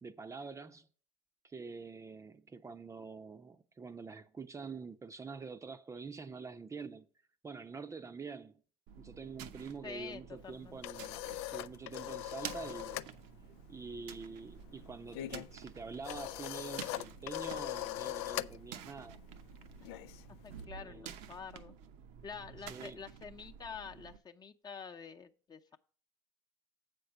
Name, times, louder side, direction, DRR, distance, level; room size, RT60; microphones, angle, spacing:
voice 1, 0.0-0.9 1.4-7.1 7.4-8.6 8.9-11.2 11.5-13.0 13.7-19.2 20.8-21.2 22.7-23.0, right 4 dB, 20° right, 0.7 m, -46 dB
sound 1, 8.9-24.2, right 8 dB, 65° right, 0.8 m, -51 dB
voice 2, 9.8-10.8 19.8-19.9 20.4-21.7 22.2-25.8, left 6 dB, 30° left, 0.9 m, -47 dB
sound 2, 10.4-13.1 13.4-13.7 14.0-20.6, left 16 dB, 70° left, 0.4 m, -42 dB
7.7 x 5.3 x 5.8 m
hypercardioid pair, 70°, 14 cm